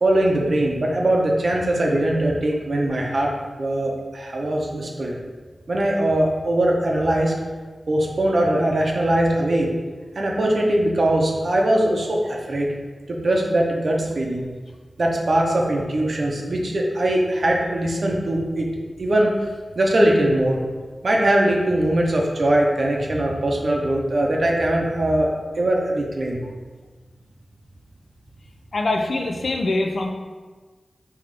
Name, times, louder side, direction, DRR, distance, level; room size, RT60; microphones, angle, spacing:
voice 1, 0.0-5.2 5.7-7.3 7.9-9.7 10.1-12.7 13.1-14.5 15.0-18.7 19.0-19.5 19.8-20.6 21.0-26.4, right 1 dB, 65° right, -1 dB, 0.7 m, -21 dB
voice 2, 28.7-30.1, left 2 dB, 70° left, 3 dB, 0.4 m, -23 dB
3.7 x 3.0 x 3.2 m, 1.4 s
cardioid pair, 50°, 0 cm